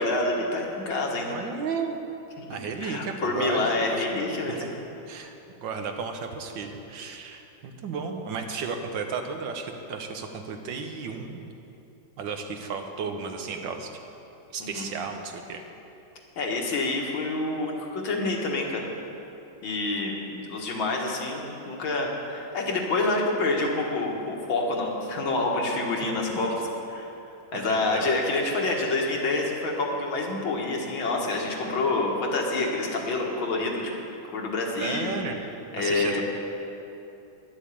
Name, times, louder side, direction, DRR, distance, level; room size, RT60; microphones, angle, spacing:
voice 1, 0.0-1.4 2.4-4.7 14.6-14.9 16.4-18.9 19.6-26.5 26.9-27.1 27.5-33.8 34.3-35.1 35.7-36.2, left 2 dB, 80° left, -1 dB, 2.3 m, -27 dB
voice 2, 1.3-2.0 2.5-4.0 4.5-4.7 5.1-5.3 5.6-11.4 12.2-14.0 14.5-15.6 26.0-26.6 27.5-28.2 34.8-35.4 35.8-36.2, right 5 dB, 70° right, 5 dB, 1.5 m, -34 dB
11.0 x 7.2 x 8.4 m, 2.9 s
omnidirectional pair, 2.2 m